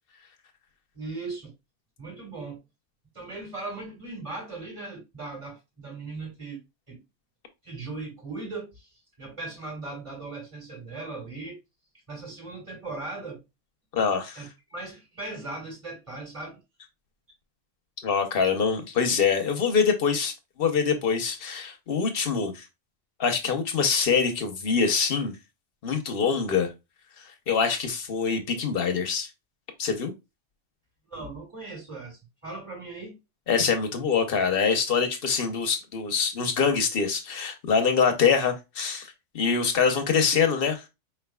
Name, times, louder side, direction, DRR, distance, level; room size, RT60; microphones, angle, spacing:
voice 1, 0.9-1.5 2.0-2.6 3.1-6.6 6.9-7.0 7.6-11.6 12.1-13.4 14.4-16.6 31.1-33.1, right 3 dB, 25° right, 1.9 m, -38 dB
voice 2, 13.9-14.4 18.0-22.6 23.2-25.3 25.8-26.7 27.5-29.3 29.8-30.1 33.5-40.8, left 6 dB, 55° left, 1.0 m, -24 dB
4.6 x 3.3 x 2.3 m
omnidirectional pair, 1.3 m